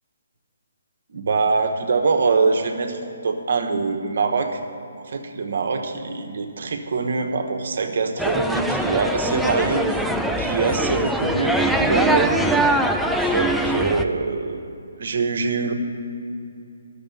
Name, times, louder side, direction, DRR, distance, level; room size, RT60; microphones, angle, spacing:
voice 1, 1.1-4.6 5.0-10.0 10.4-12.5 13.1-14.7 15.0-15.7, right 4 dB, 60° right, 5 dB, 1.1 m, -24 dB
sound 1, 8.2-14.0, right 1 dB, ahead, 0.4 m, -22 dB
12.0 x 6.8 x 6.9 m, 2.6 s
hypercardioid pair, 160°, 0 cm